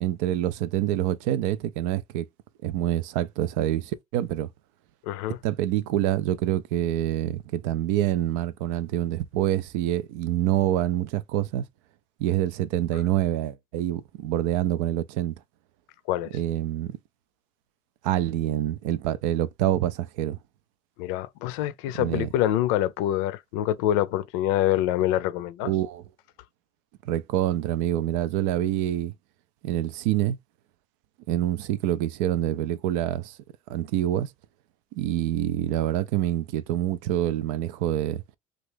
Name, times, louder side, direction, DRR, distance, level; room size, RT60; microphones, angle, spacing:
voice 1, 0.0-2.3 2.6-4.5 5.4-11.6 12.2-15.4 16.3-17.0 18.0-20.4 22.0-22.3 25.6-26.0 27.0-29.1 29.6-30.4 31.3-33.4 33.7-34.3 34.9-38.2, right 13 dB, 75° right, 0.4 m, -26 dB
voice 2, 5.1-5.4 16.1-16.4 21.0-25.7, left 13 dB, 70° left, 0.5 m, -25 dB
3.0 x 2.4 x 3.2 m
supercardioid pair, 105°, 17 cm